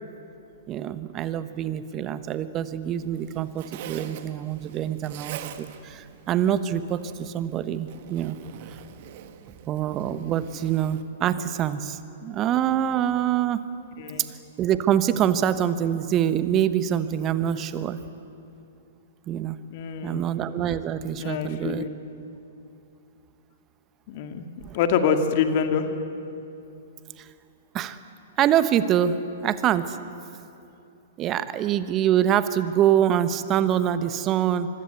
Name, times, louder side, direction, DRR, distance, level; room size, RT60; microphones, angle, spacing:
voice 1, 0.7-8.4 9.7-13.6 14.2-14.3 14.6-18.0 19.3-19.6 20.0-21.9 24.6-24.8 27.2-27.3 27.7-28.0 28.4-29.2 29.4-30.0 31.2-34.7, right 10 dB, 30° right, 13 dB, 1.2 m, -25 dB
Zipper (clothing), 2.8-11.0, right 10 dB, 50° right, 1.6 m, -44 dB
voice 2, 19.7-20.2 21.2-21.9 24.1-24.5 24.7-25.9, left 6 dB, 45° left, 6 dB, 2.3 m, -25 dB
25.0 x 23.0 x 8.2 m, 2.7 s
figure-of-eight pair, 110°, 0 cm